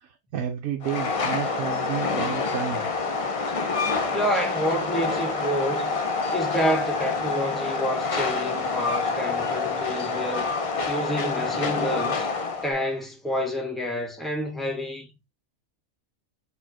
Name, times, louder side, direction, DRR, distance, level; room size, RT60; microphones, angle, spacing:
voice 1, 0.0-2.9, right 8 dB, 75° right, 1.2 m, -31 dB
Train, 0.8-12.7, left 4 dB, 55° left, 0.3 m, -27 dB
voice 2, 4.1-6.0 6.3-10.5 10.9-12.3 12.6-15.1, equal, ahead, 0.9 m, -28 dB
4.2 x 3.4 x 2.8 m
omnidirectional pair, 1.5 m